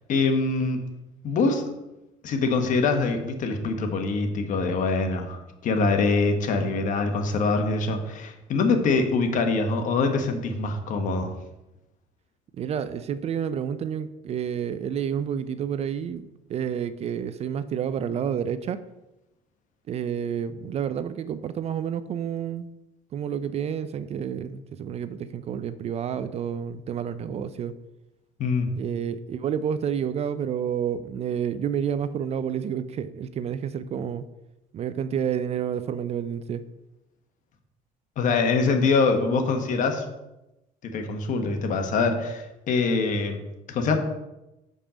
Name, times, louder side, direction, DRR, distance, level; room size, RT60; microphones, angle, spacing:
voice 1, 0.1-0.8 1.2-1.6 2.2-11.3 28.4-28.7 38.2-40.0 40.8-44.0, left 4 dB, 50° left, 5 dB, 1.3 m, -24 dB
voice 2, 12.6-18.8 19.9-22.7 23.1-27.7 28.7-34.3 34.7-36.6, right 8 dB, 40° right, 13 dB, 0.4 m, -29 dB
7.2 x 5.4 x 5.0 m, 0.96 s
cardioid pair, 115°, 16 cm